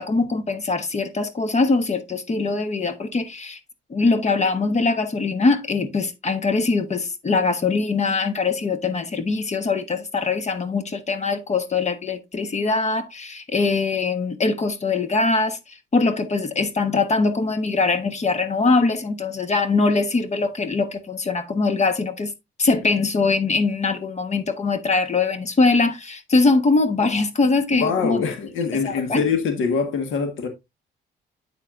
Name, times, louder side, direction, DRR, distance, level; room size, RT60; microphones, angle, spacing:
voice 1, 0.0-3.6 3.9-22.3 22.6-28.2 28.8-29.2, left 3 dB, 35° left, 1.2 m, -22 dB
voice 2, 27.7-30.5, left 5 dB, 80° left, 1.6 m, -24 dB
8.9 x 7.5 x 2.5 m
cardioid pair, 90°, 20 cm